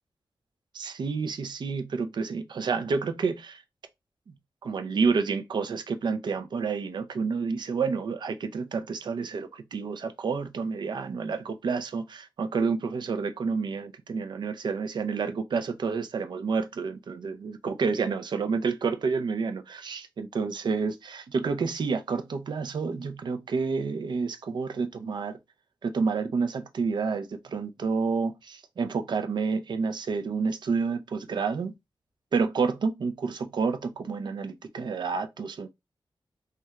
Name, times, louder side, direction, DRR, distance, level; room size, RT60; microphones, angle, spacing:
voice 1, 0.7-3.6 4.6-25.4 25.8-31.7 32.3-35.7, right 5 dB, 60° right, 0.4 m, -29 dB
2.9 x 2.2 x 2.3 m
wide cardioid pair, 165°, 9 cm